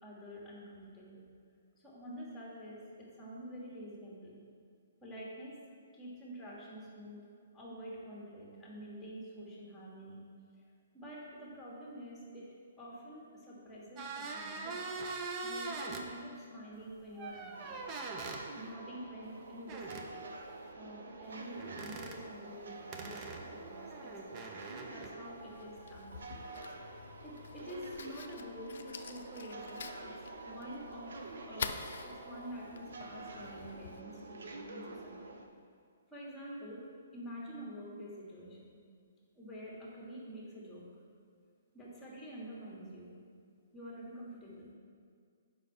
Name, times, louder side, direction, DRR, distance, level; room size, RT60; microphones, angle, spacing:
voice 1, 0.0-1.3 1.8-4.4 5.0-5.7 5.9-7.2 7.5-10.2 10.9-12.5 12.8-14.9 15.4-17.8 18.3-20.3 20.7-23.2 23.5-24.6 24.9-26.2 27.2-30.2 30.4-35.4 36.1-38.8 39.3-40.9 41.7-43.1 43.7-44.7, equal, 5° left, -4 dB, 1.5 m, -48 dB
sound 1, 14.0-16.1 17.2-18.4 19.7-20.1 21.6-22.2 22.9-25.1, right 3 dB, 25° right, 0.5 m, -42 dB
sound 2, 17.5-35.5, right 2 dB, 80° right, 0.7 m, -48 dB
Fire, 25.2-34.0, left 6 dB, 65° left, 0.4 m, -47 dB
7.1 x 5.4 x 4.4 m, 2.2 s
hypercardioid pair, 160°, 0 cm